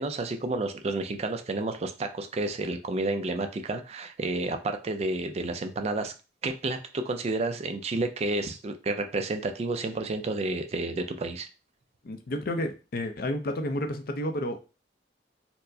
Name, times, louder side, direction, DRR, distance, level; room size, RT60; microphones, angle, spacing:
voice 1, 0.0-6.1 6.4-11.5, right 2 dB, 35° right, 7 dB, 0.4 m, -30 dB
voice 2, 12.0-14.6, left 1 dB, 55° left, 6 dB, 0.5 m, -31 dB
4.4 x 2.0 x 2.6 m, 0.31 s
head